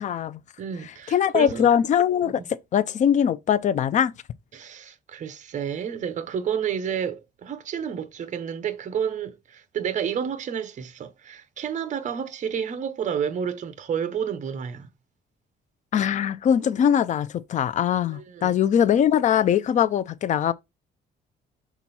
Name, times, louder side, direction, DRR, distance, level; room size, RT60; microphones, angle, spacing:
voice 1, 0.0-0.4 1.1-4.1 15.9-20.5, left 9 dB, 45° left, 0.5 m, -22 dB
voice 2, 0.6-1.7 2.2-2.4 4.5-14.9 18.1-18.6, right 8 dB, 45° right, 0.9 m, -30 dB
6.1 x 4.0 x 4.3 m
cardioid pair, 150°, 18 cm